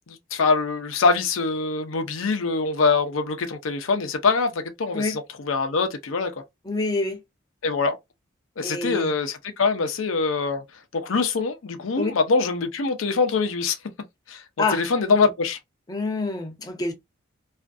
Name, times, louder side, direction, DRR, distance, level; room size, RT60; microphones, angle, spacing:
voice 1, 0.1-6.3 7.6-8.0 8.6-10.6 10.9-13.8 14.3-14.4 14.7-15.6, left 4 dB, 90° left, 0.6 m, -24 dB
voice 2, 6.7-7.2 8.6-9.1 12.0-12.1 14.6-14.8 15.9-16.9, left 3 dB, 20° left, 0.5 m, -26 dB
2.5 x 2.4 x 2.2 m
head